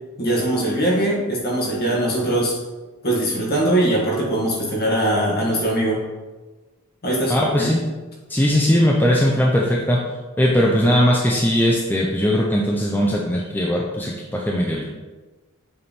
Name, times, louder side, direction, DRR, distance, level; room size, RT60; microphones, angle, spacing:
voice 1, 0.2-2.6 3.0-6.0 7.0-7.7, right 1 dB, 45° left, -4 dB, 1.8 m, -21 dB
voice 2, 7.3-7.8 8.3-10.0 10.4-14.8, equal, 10° left, -2 dB, 0.5 m, -19 dB
6.9 x 3.4 x 4.3 m, 1.2 s
head